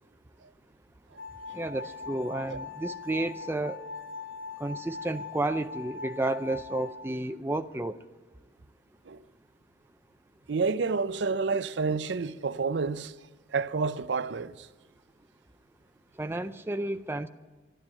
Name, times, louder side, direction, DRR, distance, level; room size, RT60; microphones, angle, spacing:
sound 1, 1.2-6.9, left 4 dB, 80° left, 2.8 m, -41 dB
voice 1, 1.5-3.8 4.6-7.9 16.2-17.3, right 2 dB, 10° right, 0.4 m, -31 dB
voice 2, 10.5-13.1 13.5-14.7, right 4 dB, 65° right, 0.5 m, -29 dB
12.5 x 11.5 x 8.8 m
head